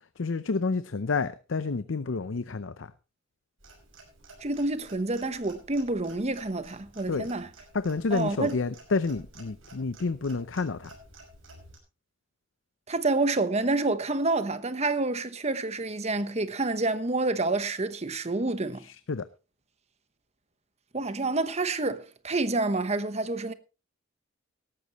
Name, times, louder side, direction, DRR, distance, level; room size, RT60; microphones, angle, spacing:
voice 1, 0.2-2.9 7.1-7.3 7.7-10.9 18.8-19.2, left 4 dB, 70° left, 0.6 m, -29 dB
Clock, 3.6-11.8, right 2 dB, 90° right, 6.1 m, -52 dB
voice 2, 4.4-7.5 8.1-8.6 12.9-18.9 20.9-23.5, right 2 dB, 35° right, 1.0 m, -28 dB
18.0 x 13.5 x 3.0 m
head